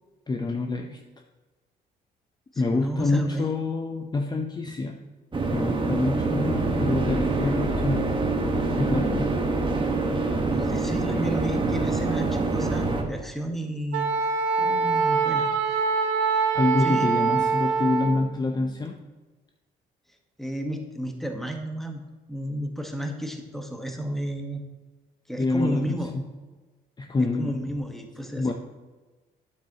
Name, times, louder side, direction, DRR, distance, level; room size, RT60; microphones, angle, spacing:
voice 1, 0.3-1.0 2.6-5.0 5.5-8.1 8.8-9.4 16.5-19.0 25.4-26.3 27.0-27.6 28.4-28.5, left 3 dB, 25° left, 3 dB, 0.6 m, -26 dB
voice 2, 2.5-3.5 4.7-4.8 10.5-14.1 14.6-16.1 16.8-17.1 20.4-22.0 22.3-24.6 25.3-26.1 27.2-28.5, equal, ahead, 4 dB, 1.3 m, -32 dB
sound 1, 5.3-13.0, right 3 dB, 30° right, 1.3 m, -25 dB
Wind instrument woodwind instrument, 13.9-18.2, right 5 dB, 85° right, 0.7 m, -24 dB
9.2 x 7.3 x 3.0 m, 1.2 s
supercardioid pair, 70°, 18 cm